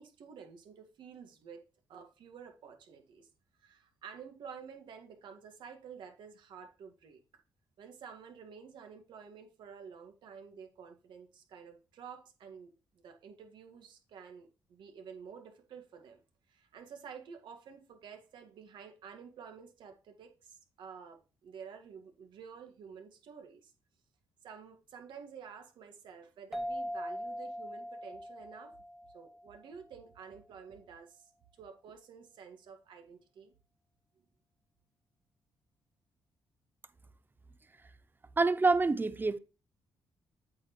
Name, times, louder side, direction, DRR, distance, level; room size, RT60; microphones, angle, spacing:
voice 1, 0.0-1.6 1.9-3.3 3.5-7.2 7.8-16.2 16.5-23.7 24.4-28.8 29.1-31.3 31.6-33.5, right 6 dB, 70° right, 1.9 m, -51 dB
sound 1, 26.5-29.8, equal, 5° right, 1.1 m, -41 dB
voice 2, 38.4-39.4, right 3 dB, 25° right, 0.8 m, -26 dB
8.5 x 6.5 x 3.1 m
supercardioid pair, 60°, 8 cm